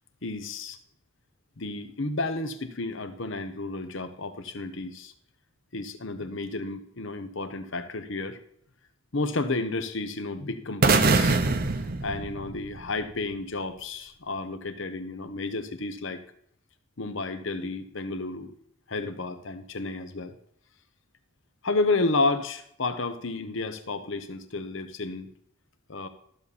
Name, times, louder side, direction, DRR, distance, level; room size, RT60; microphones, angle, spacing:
voice 1, 0.2-0.8 1.6-5.1 5.7-8.4 9.1-11.4 12.0-16.2 17.0-18.6 18.9-20.3 21.6-25.3 25.9-26.1, left 3 dB, 65° left, 10 dB, 0.9 m, -31 dB
sound 1, 10.8-12.9, right 3 dB, 45° right, 0.7 m, -23 dB
13.5 x 7.1 x 4.2 m, 0.68 s
head